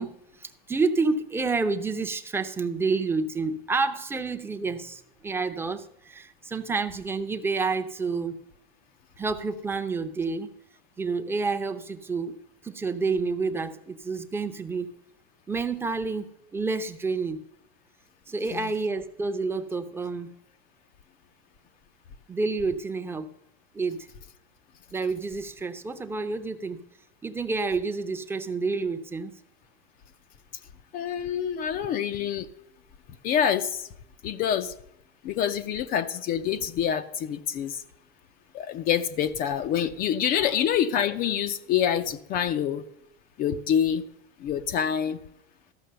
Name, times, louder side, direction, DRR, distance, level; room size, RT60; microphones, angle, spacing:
voice 1, 0.0-8.3 9.2-10.5 11.0-12.4 12.6-14.9 15.5-16.3 16.5-17.4 18.3-20.3 22.3-23.3 23.7-24.1 24.9-26.8 27.2-29.3 40.4-40.5, right 4 dB, 5° right, 7 dB, 0.7 m, -29 dB
voice 2, 30.9-32.5 33.2-33.9 34.2-34.7 35.2-37.8 38.5-42.8 43.4-44.0 44.4-45.2, left 9 dB, 30° left, 9 dB, 0.5 m, -26 dB
13.5 x 6.0 x 6.7 m, 0.80 s
supercardioid pair, 135°, 31 cm